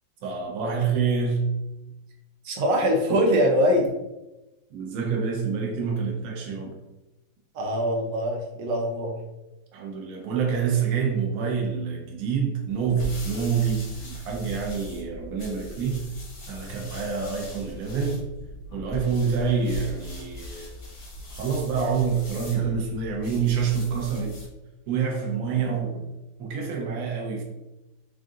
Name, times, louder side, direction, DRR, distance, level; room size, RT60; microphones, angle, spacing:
voice 1, 0.2-1.5 4.7-6.8 9.7-16.1 16.5-18.2 18.7-20.7 21.3-24.4 24.9-26.0 26.4-27.4, right 6 dB, 60° right, 0 dB, 1.1 m, -27 dB
voice 2, 2.4-3.9 7.5-9.1, equal, 80° right, 1 dB, 1.3 m, -23 dB
sound 1, 12.7-24.6, equal, 60° left, 1.6 m, -40 dB
3.7 x 2.4 x 3.7 m, 0.99 s
omnidirectional pair, 2.0 m